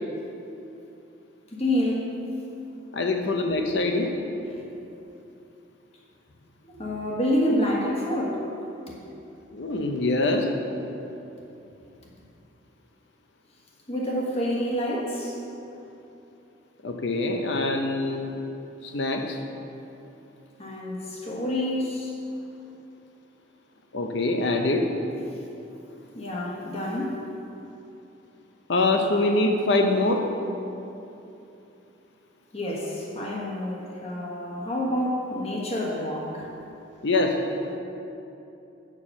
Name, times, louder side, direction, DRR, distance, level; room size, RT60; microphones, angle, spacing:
voice 1, 1.5-2.2 4.5-4.6 6.6-8.5 8.9-9.1 13.9-15.4 20.6-22.2 26.1-27.3 32.5-36.5, left 1 dB, 30° left, -3 dB, 1.3 m, -28 dB
voice 2, 2.9-4.1 9.5-10.6 14.1-14.2 16.8-18.3 18.8-19.4 23.9-24.9 28.7-30.3 37.0-37.5, left 2 dB, 65° left, 4 dB, 0.7 m, -24 dB
8.6 x 4.7 x 5.9 m, 2.8 s
head